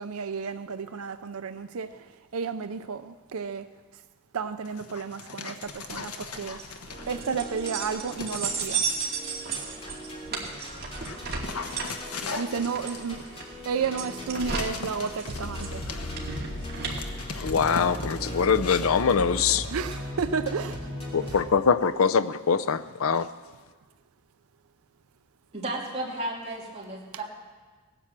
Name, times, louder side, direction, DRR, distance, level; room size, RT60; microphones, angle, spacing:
voice 1, 0.0-2.1 2.3-3.7 4.3-6.6 7.1-8.8 12.4-13.4 13.7-15.9 19.7-20.9, right 5 dB, 70° right, 10 dB, 0.5 m, -32 dB
Dog, 4.6-7.5 8.1-9.1 9.8-20.1, left 4 dB, 80° left, 1.1 m, -40 dB
sound 1, 5.6-16.9, right 5 dB, 45° right, 2.4 m, -35 dB
sound 2, 6.9-21.5, equal, 25° left, 2.9 m, -39 dB
voice 2, 17.4-19.7 21.1-23.3, left 6 dB, 65° left, 13 dB, 0.5 m, -23 dB
voice 3, 25.5-27.2, right 1 dB, 30° right, -3 dB, 3.0 m, -34 dB
18.0 x 10.0 x 7.4 m, 1.4 s
head